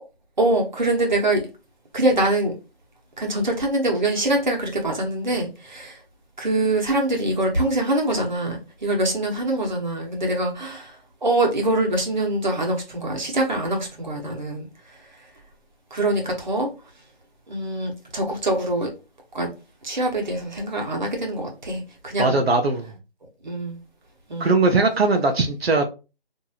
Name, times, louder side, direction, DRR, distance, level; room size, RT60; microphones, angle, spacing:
voice 1, 0.4-1.4 1.9-2.5 3.2-6.0 6.4-11.0 11.2-14.7 15.9-16.7 17.5-18.9 19.3-19.5 19.8-22.4 23.4-23.8 24.3-24.6, right 1 dB, 50° right, 1.0 m, -24 dB
voice 2, 22.2-22.9 24.4-25.8, right 3 dB, 80° right, 0.7 m, -20 dB
2.9 x 2.6 x 2.3 m
figure-of-eight pair, 175°, 31 cm